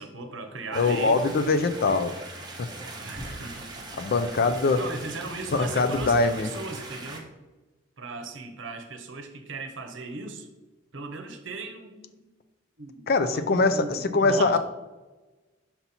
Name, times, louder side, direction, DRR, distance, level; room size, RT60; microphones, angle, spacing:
voice 1, 0.0-1.2 3.0-3.7 4.7-7.3 8.0-10.5 10.9-12.2 12.8-14.6, right 3 dB, 75° right, 6 dB, 0.8 m, -38 dB
voice 2, 0.7-2.1 2.6-2.7 4.0-4.8 5.5-6.5 13.1-14.6, left 3 dB, 55° left, 10 dB, 0.4 m, -23 dB
sound 1, 0.7-7.2, right 2 dB, 20° right, 1.0 m, -41 dB
sound 2, 2.7-2.8 3.1-3.4 5.5-5.6 5.9-6.1, equal, 5° left, 1.1 m, -40 dB
5.7 x 4.1 x 4.3 m, 1.2 s
head